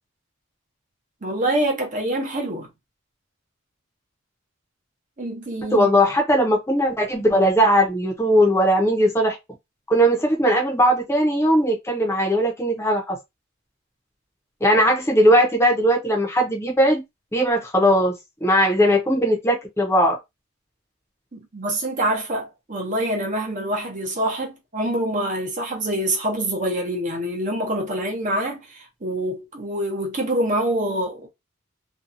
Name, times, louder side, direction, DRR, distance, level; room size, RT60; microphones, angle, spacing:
voice 1, 1.2-2.7 5.2-5.9 21.3-31.3, right 1 dB, 40° right, 0.8 m, -25 dB
voice 2, 5.7-9.4 9.9-13.2 14.6-17.0 17.3-18.2 18.4-20.2, equal, 15° left, 0.7 m, -19 dB
2.6 x 2.3 x 2.6 m
head